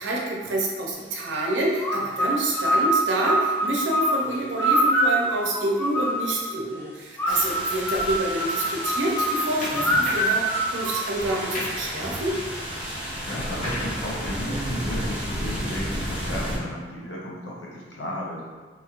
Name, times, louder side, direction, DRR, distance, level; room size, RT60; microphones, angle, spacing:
voice 1, 0.0-12.3, right 1 dB, 90° right, -2 dB, 0.6 m, -27 dB
sound 1, 1.8-6.5 7.2-11.6, right 1 dB, 10° left, 0.3 m, -25 dB
sound 2, 7.3-16.6, equal, 10° right, 1.3 m, -32 dB
sound 3, 9.6-10.5 11.2-15.9, left 1 dB, 45° left, 0.7 m, -37 dB
voice 2, 13.2-18.4, left 1 dB, 80° left, -4 dB, 0.8 m, -33 dB
3.0 x 2.8 x 2.4 m, 1.4 s
head